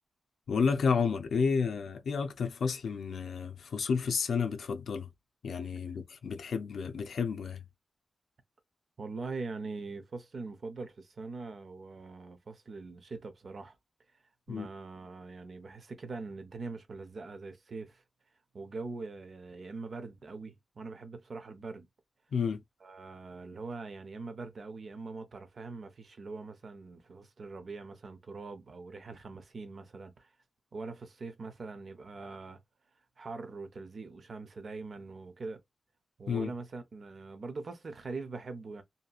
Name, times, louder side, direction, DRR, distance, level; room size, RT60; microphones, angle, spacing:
voice 1, 0.5-5.1 5.4-7.6 14.5-14.7 22.3-22.6 36.3-36.5, left 5 dB, 90° left, 0.5 m, -31 dB
voice 2, 9.0-13.7 14.5-18.0 18.5-21.9 22.8-30.3 30.7-32.6 33.2-35.6 36.2-38.8, right 3 dB, 55° right, 0.7 m, -42 dB
2.8 x 2.7 x 2.3 m
wide cardioid pair, 130°, 0 cm